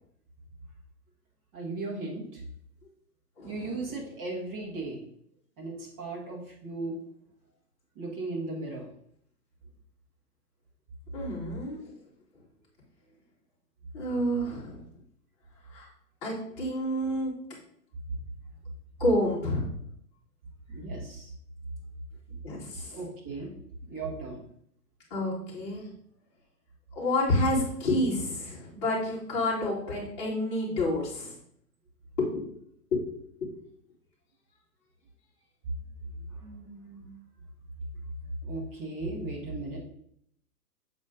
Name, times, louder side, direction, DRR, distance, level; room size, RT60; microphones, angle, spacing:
voice 1, 1.5-2.4 3.4-5.0 5.6-7.0 7.9-8.9 20.7-21.3 22.9-23.5 23.9-24.4 36.4-37.1 38.4-39.8, right 2 dB, 20° right, -3 dB, 1.5 m, -36 dB
voice 2, 3.4-3.8 11.1-11.9 13.9-14.8 15.7-15.9 16.2-17.3 19.0-19.7 22.4-23.0 25.1-25.9 26.9-31.4 32.2-32.5 32.9-33.1 33.4-33.5, left 1 dB, 25° left, -6 dB, 2.5 m, -29 dB
7.5 x 4.2 x 3.8 m, 0.69 s
hypercardioid pair, 160°, 48 cm